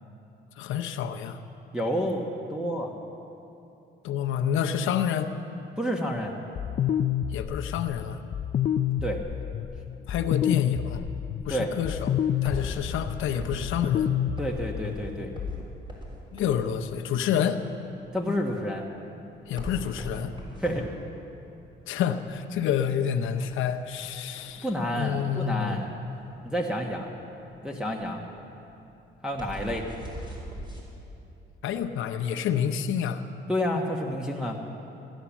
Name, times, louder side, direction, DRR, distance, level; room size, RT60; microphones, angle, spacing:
voice 1, 0.6-1.4 4.0-5.3 7.3-8.2 10.1-11.0 11.5-14.1 16.3-17.6 19.5-20.3 21.9-24.7 25.0-25.8 31.6-33.2, left 8 dB, 85° left, 7 dB, 0.8 m, -28 dB
voice 2, 1.7-2.9 5.8-6.3 9.0-9.2 11.5-11.7 14.4-15.3 18.1-18.8 20.6-20.9 24.6-26.0 26.4-27.1 27.6-28.2 29.2-29.9 33.5-34.6, equal, 5° right, -2 dB, 1.2 m, -29 dB
sound 1, 6.6-15.6, left 9 dB, 40° left, 0.4 m, -29 dB
sound 2, 11.9-30.8, equal, 25° right, 4.0 m, -41 dB
15.0 x 10.0 x 7.2 m, 2.8 s
cardioid pair, 90°, 20 cm